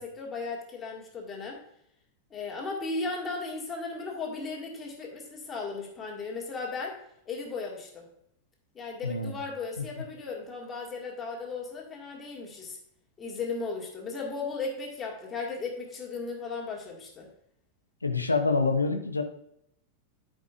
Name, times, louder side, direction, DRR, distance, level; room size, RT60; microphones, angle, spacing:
voice 1, 0.0-1.6 2.3-7.0 7.3-8.0 8.7-12.8 13.2-17.3, left 4 dB, 20° left, -1 dB, 2.0 m, -36 dB
voice 2, 9.0-9.4 9.8-9.9 18.0-19.2, left 3 dB, 80° left, 5 dB, 1.0 m, -26 dB
13.0 x 5.3 x 2.5 m, 0.75 s
figure-of-eight pair, 90°, 0 cm